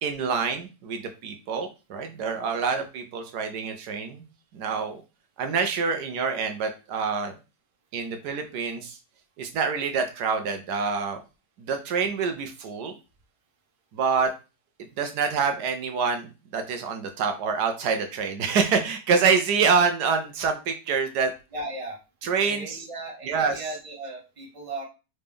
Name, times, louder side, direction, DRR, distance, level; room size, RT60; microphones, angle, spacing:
voice 1, 0.0-4.2 4.5-5.0 5.4-7.4 7.9-9.0 9.4-11.2 11.6-13.0 13.9-14.3 15.0-21.3 22.2-22.8 23.3-23.6, right 5 dB, 75° right, 6 dB, 1.2 m, -26 dB
voice 2, 21.5-22.0 22.4-24.8, right 2 dB, 20° right, -1 dB, 1.1 m, -36 dB
3.9 x 3.3 x 3.5 m, 0.30 s
omnidirectional pair, 1.8 m